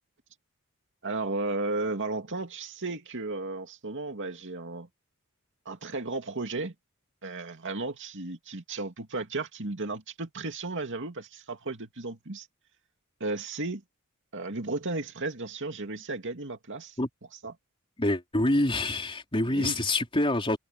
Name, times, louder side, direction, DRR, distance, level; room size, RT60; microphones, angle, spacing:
voice 1, 1.0-4.9 5.7-6.7 7.2-12.5 13.2-13.8 14.3-17.0 17.4-17.5 19.5-19.8, right 2 dB, 60° right, 2.4 m, -34 dB
voice 2, 18.0-20.6, left 1 dB, 25° left, 3.8 m, -26 dB
head